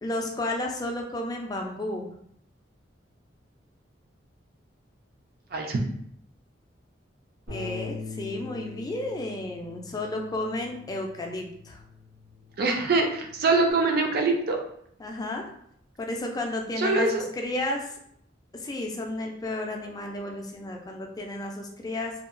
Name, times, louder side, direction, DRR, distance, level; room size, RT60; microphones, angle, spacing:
voice 1, 0.0-2.1 7.5-11.8 15.0-15.5 16.0-17.9 18.5-22.1, left 1 dB, 20° left, 2 dB, 0.3 m, -32 dB
Bass guitar, 7.5-13.7, left 4 dB, 80° right, 1.5 m, -43 dB
voice 2, 12.6-14.6 16.8-17.2, right 3 dB, 55° right, 2 dB, 0.4 m, -24 dB
2.8 x 2.2 x 2.5 m, 0.69 s
head